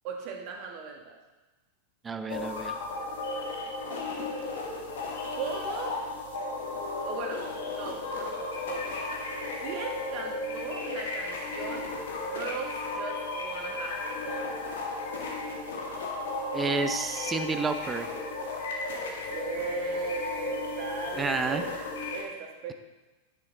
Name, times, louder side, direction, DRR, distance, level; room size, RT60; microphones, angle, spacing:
voice 1, 0.0-1.2 5.4-6.0 7.0-9.0 9.6-11.9 12.2-14.6 19.3-21.7 22.1-22.7, right 5 dB, 40° right, 2 dB, 1.8 m, -38 dB
voice 2, 2.0-2.8 16.5-18.1 21.2-21.6, right 4 dB, 15° right, 10 dB, 0.7 m, -30 dB
sound 1, 2.3-22.2, left 3 dB, 60° left, 1.8 m, -34 dB
9.6 x 9.1 x 4.0 m, 1.1 s
figure-of-eight pair, 90°, 0 cm